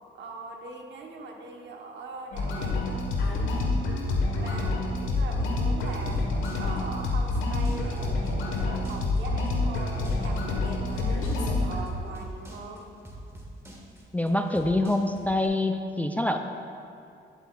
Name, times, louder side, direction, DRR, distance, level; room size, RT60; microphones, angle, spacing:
voice 1, 0.1-3.0 3.3-3.6 4.4-6.2 6.5-12.8, right 3 dB, 65° right, 2 dB, 1.1 m, -41 dB
sound 1, 2.3-11.8, left 2 dB, 90° left, 1.3 m, -27 dB
sound 2, 5.9-15.5, right 1 dB, 15° right, 1.5 m, -45 dB
voice 2, 14.1-16.4, left 1 dB, 10° left, 5 dB, 0.3 m, -25 dB
10.0 x 7.9 x 2.4 m, 2.7 s
cardioid pair, 90°, 20 cm